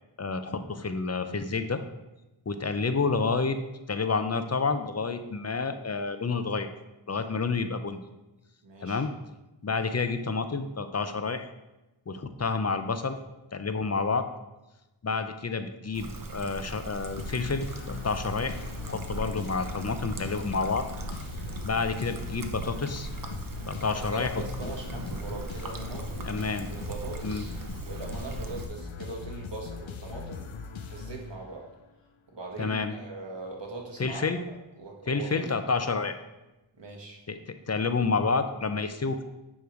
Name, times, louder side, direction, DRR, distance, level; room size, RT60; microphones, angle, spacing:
voice 1, 0.2-1.8 2.5-3.6 3.9-6.7 7.1-8.1 8.8-9.1 9.6-11.5 12.1-13.2 13.5-14.3 15.0-18.6 18.9-20.9 21.6-23.1 23.7-24.3 24.6-24.7 26.2-26.7 27.2-27.4 32.6-32.9 34.0-34.4 35.1-36.1 37.3-39.2, left 4 dB, 35° left, 9 dB, 0.6 m, -29 dB
voice 2, 8.6-9.1 23.9-26.3 26.6-30.5 30.9-31.7 32.3-35.9 36.8-37.2, right 3 dB, 60° right, -1 dB, 1.7 m, -41 dB
Trickle dribble, 15.9-28.7, right 3 dB, 45° right, 0.8 m, -39 dB
sound 1, 17.2-31.8, left 5 dB, 75° left, 0.7 m, -40 dB
9.5 x 3.2 x 5.0 m, 1.0 s
wide cardioid pair, 60°, 47 cm